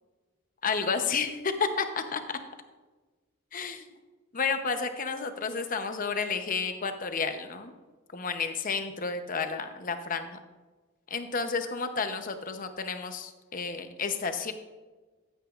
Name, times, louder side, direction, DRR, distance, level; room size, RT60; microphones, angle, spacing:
voice 1, 0.6-2.4 3.5-3.9 4.3-7.7 8.1-10.4 11.1-14.5, left 5 dB, 40° left, 7 dB, 0.8 m, -31 dB
14.5 x 9.1 x 2.5 m, 1.3 s
head